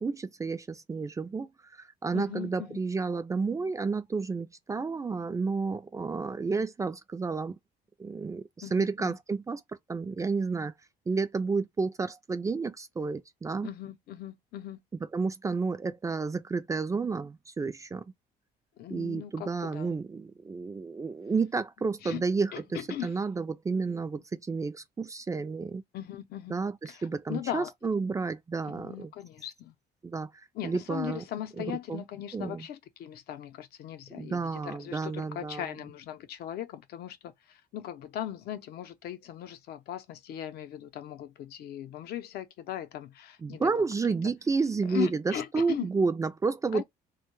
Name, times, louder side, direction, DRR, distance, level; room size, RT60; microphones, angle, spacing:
voice 1, 0.0-7.6 8.0-9.6 9.9-10.7 11.1-13.7 15.1-18.1 18.9-22.5 23.0-25.8 26.5-26.7 27.0-29.1 30.0-30.3 30.6-31.2 31.6-31.7 31.9-32.0 32.3-32.6 34.2-35.7 43.4-46.8, right 4 dB, 20° right, 0.3 m, -31 dB
voice 2, 2.1-2.8 8.6-9.2 13.6-14.8 18.8-20.0 22.0-22.2 22.5-23.2 25.9-26.6 26.9-27.7 28.6-29.8 30.5-44.3 44.8-45.9 46.7-46.8, left 11 dB, 70° left, 0.6 m, -39 dB
2.2 x 2.2 x 3.0 m
cardioid pair, 110°, 17 cm